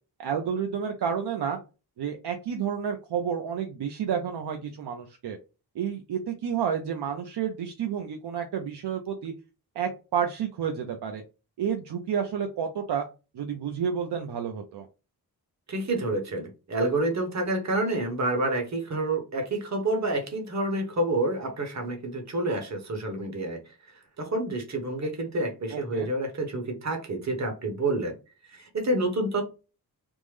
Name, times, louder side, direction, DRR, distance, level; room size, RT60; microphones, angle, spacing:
voice 1, 0.2-1.6 2.0-5.4 5.8-9.3 9.8-11.2 11.6-13.1 13.3-14.9 25.7-26.1, right 7 dB, 80° right, 0.6 m, -30 dB
voice 2, 15.7-23.6 24.2-28.1 28.5-29.4, right 2 dB, 40° right, 1.0 m, -28 dB
3.5 x 2.0 x 3.2 m
wide cardioid pair, 140°, 40 cm